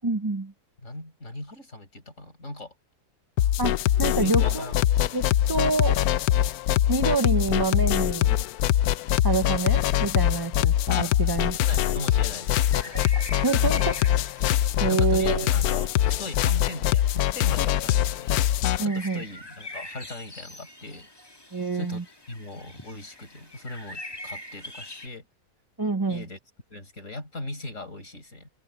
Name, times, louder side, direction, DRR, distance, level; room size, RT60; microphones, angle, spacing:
voice 1, 0.0-0.5 3.6-4.7 5.1-6.0 6.9-8.4 9.2-11.6 12.8-13.0 13.4-14.0 14.8-15.5 18.8-19.2 21.5-22.0 25.8-26.2, right 3 dB, 30° right, 0.4 m, -27 dB
voice 2, 0.8-2.7 4.1-4.8 11.0-11.1 11.5-12.6 13.7-14.1 14.8-15.9 16.2-18.4 18.8-21.1 21.7-25.2 26.1-26.4 26.7-28.5, left 2 dB, 50° left, 5.9 m, -38 dB
sound 1, 3.4-18.9, left 12 dB, 80° left, 1.1 m, -23 dB
sound 2, 12.1-25.1, left 1 dB, 15° left, 2.2 m, -44 dB
omnidirectional pair, 1.6 m